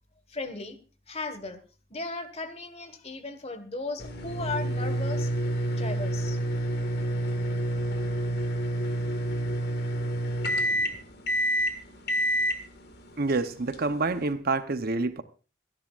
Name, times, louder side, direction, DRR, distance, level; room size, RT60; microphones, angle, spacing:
voice 1, 0.3-0.8 1.1-1.6 1.9-5.3 5.8-6.4, left 3 dB, 30° left, 1.5 m, -36 dB
sound 1, 4.0-14.3, right 1 dB, 55° left, 1.8 m, -29 dB
voice 2, 13.2-15.2, right 3 dB, 50° right, 0.8 m, -27 dB
26.5 x 10.5 x 2.5 m
head